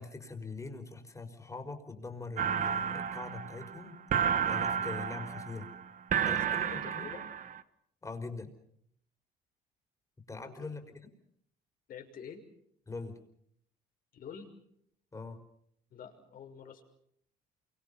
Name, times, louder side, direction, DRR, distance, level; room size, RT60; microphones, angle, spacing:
voice 1, 0.0-4.0 4.5-5.7 6.2-7.1 8.0-8.5 10.3-11.1 12.9-13.2 15.1-15.4, left 3 dB, 20° left, 6 dB, 5.1 m, -43 dB
sound 1, 2.4-7.6, right 8 dB, 50° right, 1.5 m, -32 dB
voice 2, 6.6-7.3 10.4-10.5 11.9-12.4 14.1-14.5 15.9-16.8, left 7 dB, 60° left, 4 dB, 6.0 m, -47 dB
28.5 x 25.0 x 5.8 m, 0.70 s
cardioid pair, 110°, 17 cm